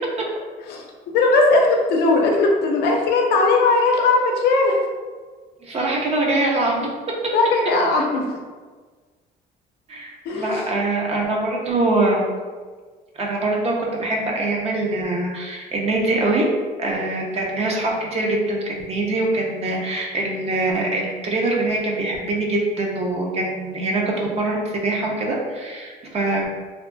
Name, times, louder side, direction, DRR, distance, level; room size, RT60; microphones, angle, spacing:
voice 1, 0.7-4.8 7.3-8.3 10.3-10.6, left 3 dB, 75° left, 0 dB, 0.5 m, -18 dB
voice 2, 5.6-6.9 9.9-12.3 13.2-16.5 16.8-26.5, right 2 dB, 40° right, -1 dB, 0.6 m, -23 dB
2.7 x 2.4 x 2.2 m, 1.4 s
cardioid pair, 110°, 17 cm